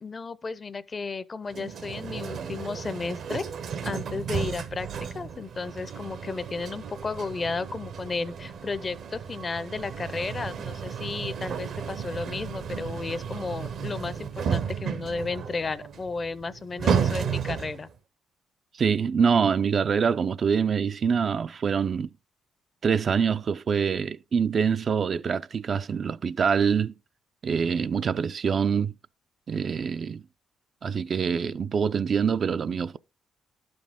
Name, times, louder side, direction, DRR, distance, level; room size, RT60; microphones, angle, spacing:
voice 1, 0.0-3.5 3.8-4.9 5.1-17.9, left 4 dB, 35° left, 0.5 m, -33 dB
sound 1, 1.5-17.9, right 7 dB, 65° right, 0.8 m, -33 dB
voice 2, 18.8-22.1 22.8-26.9 27.4-28.9 29.5-30.2 30.8-33.0, right 6 dB, 50° right, 0.3 m, -25 dB
11.5 x 5.2 x 3.6 m
cardioid pair, 90°, 0 cm